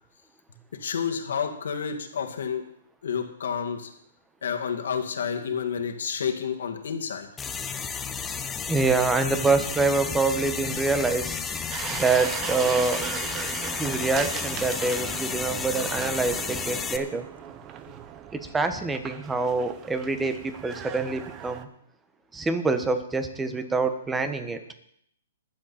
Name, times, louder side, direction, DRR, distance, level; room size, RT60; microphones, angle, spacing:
voice 1, 0.8-2.6 3.0-3.9 4.4-7.3 17.9-18.0, left 7 dB, 75° left, 4 dB, 2.2 m, -30 dB
sound 1, 7.4-17.0, left 6 dB, 15° left, 0.9 m, -32 dB
voice 2, 8.7-11.4 11.9-13.0 13.8-17.3 18.5-21.7 22.3-24.6, right 3 dB, 10° right, 9 dB, 1.3 m, -26 dB
sound 2, 11.7-21.6, right 8 dB, 25° right, 0.9 m, -38 dB
22.0 x 7.6 x 4.3 m, 0.70 s
hypercardioid pair, 140°, 0 cm